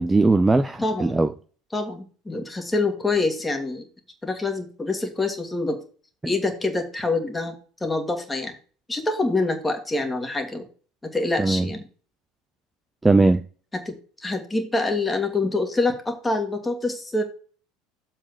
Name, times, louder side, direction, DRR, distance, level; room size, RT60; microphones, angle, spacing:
voice 1, 0.0-1.3 11.4-11.7 13.0-13.4, right 3 dB, 15° right, 0.6 m, -19 dB
voice 2, 0.8-1.2 1.7-3.9 4.2-5.8 6.2-7.5 7.8-8.5 8.9-10.7 11.1-11.8 13.7-13.9 14.2-17.2, left 2 dB, 15° left, 2.1 m, -26 dB
7.3 x 4.6 x 6.8 m
figure-of-eight pair, 70°, 0 cm